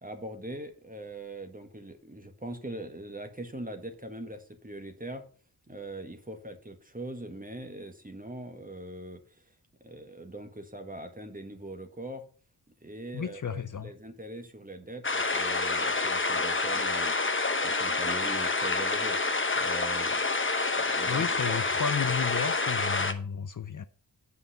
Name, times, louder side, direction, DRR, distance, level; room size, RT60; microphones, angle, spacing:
voice 1, 0.0-5.2 5.7-9.2 9.8-12.2 12.8-17.2 17.6-19.2 19.5-20.2 20.8-21.6, right 1 dB, 20° right, 1.7 m, -41 dB
voice 2, 13.1-13.9 21.1-23.9, left 7 dB, 50° left, 0.6 m, -32 dB
sound 1, 15.0-23.1, left 3 dB, 30° left, 1.1 m, -28 dB
8.3 x 5.4 x 6.7 m
wide cardioid pair, 70°, 41 cm